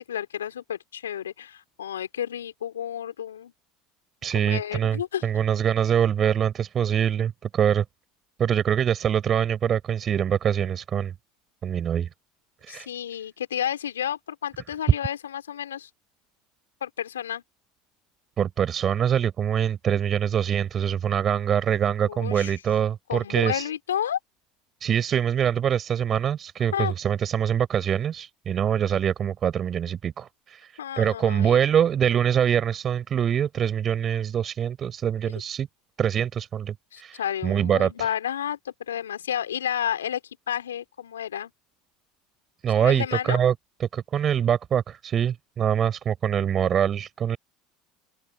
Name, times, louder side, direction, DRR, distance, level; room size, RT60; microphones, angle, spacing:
voice 1, 0.1-3.5 4.3-5.3 12.7-15.9 16.8-17.4 22.1-22.5 23.1-24.2 26.7-26.9 30.8-31.6 36.9-40.2 40.5-41.5 42.8-43.4, left 10 dB, 85° left, 4.2 m, -31 dB
voice 2, 4.2-7.8 8.4-11.1 11.6-12.1 12.7-12.9 18.4-23.7 24.8-30.7 31.0-35.7 36.0-38.1 42.6-43.5 43.8-47.4, right 9 dB, 40° right, 6.5 m, -24 dB
hypercardioid pair, 80°, 0 cm